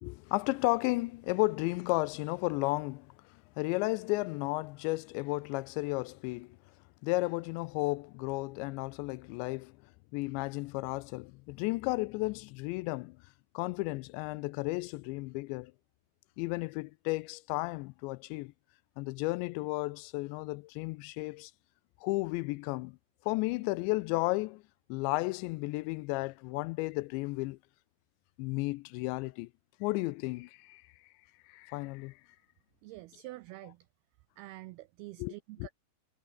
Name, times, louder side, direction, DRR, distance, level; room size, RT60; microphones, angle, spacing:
voice 1, 0.0-3.1 3.6-6.6 7.0-9.7 10.1-13.2 13.5-15.7 16.4-18.5 19.0-21.5 22.0-23.0 23.3-24.6 24.9-27.6 28.4-29.5 29.8-30.8 31.5-32.2 35.2-35.3, left 23 dB, 85° left, 2.7 m, -33 dB
voice 2, 32.8-33.9 34.4-35.7, right 18 dB, 90° right, 2.2 m, -47 dB
omnidirectional pair, 5.3 m